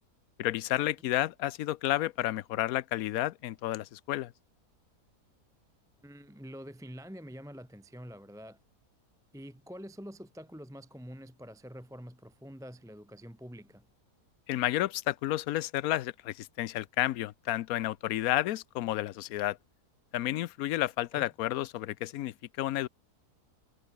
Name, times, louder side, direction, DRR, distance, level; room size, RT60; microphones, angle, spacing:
voice 1, 0.4-4.3 14.5-19.6 20.1-22.9, left 14 dB, 70° left, 1.0 m, -31 dB
voice 2, 6.0-8.6 9.3-13.9 21.1-21.3, equal, ahead, 0.9 m, -46 dB
omnidirectional pair, 1.7 m